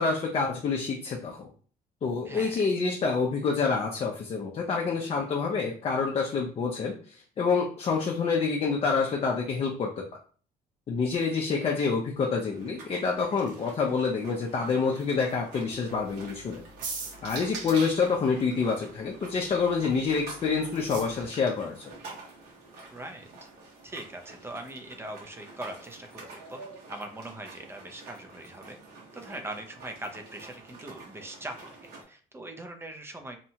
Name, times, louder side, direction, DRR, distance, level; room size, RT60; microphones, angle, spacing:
voice 1, 0.0-1.5 2.0-9.9 10.9-16.6 17.2-21.9, left 5 dB, 35° left, 0 dB, 0.5 m, -27 dB
voice 2, 2.2-2.6 22.9-23.3 23.8-26.6 26.9-28.8 29.1-33.4, right 1 dB, 15° right, 5 dB, 0.5 m, -41 dB
sound 1, 12.4-32.0, right 3 dB, 70° right, 1.2 m, -48 dB
sound 2, 12.7-25.3, right 4 dB, 50° right, 0.7 m, -48 dB
sound 3, 15.8-18.2 19.1-21.2, right 4 dB, 85° right, 0.9 m, -45 dB
2.8 x 2.2 x 2.8 m, 0.43 s
cardioid pair, 110°, 17 cm